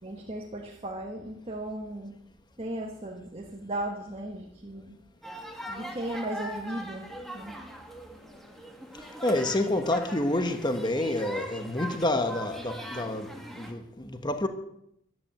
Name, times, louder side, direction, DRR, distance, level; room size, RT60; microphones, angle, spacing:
voice 1, 0.0-2.2 2.6-5.0 5.7-7.6 9.4-9.8, right 1 dB, 25° right, 1.4 m, -36 dB
sound 1, 5.2-13.7, equal, ahead, 1.9 m, -41 dB
voice 2, 9.2-14.5, left 1 dB, 20° left, 1.3 m, -28 dB
14.0 x 12.5 x 7.7 m
head